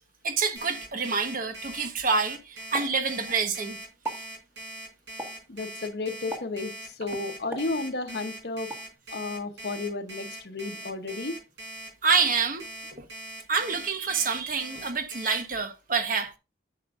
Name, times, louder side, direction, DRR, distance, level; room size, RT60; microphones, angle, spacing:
voice 1, 0.2-3.8 12.0-12.7 13.0-13.1 13.5-16.4, right 5 dB, 50° right, 1.1 m, -27 dB
Alarm, 0.6-15.4, right 1 dB, 75° right, 5.1 m, -41 dB
Explosion, 2.7-3.6 3.9-4.3 5.2-5.6 6.3-6.7 7.5-8.2 8.7-8.9, right 2 dB, 10° right, 1.6 m, -39 dB
voice 2, 5.5-8.7 9.1-11.4, left 3 dB, 60° left, 0.9 m, -33 dB
10.5 x 6.5 x 2.5 m
head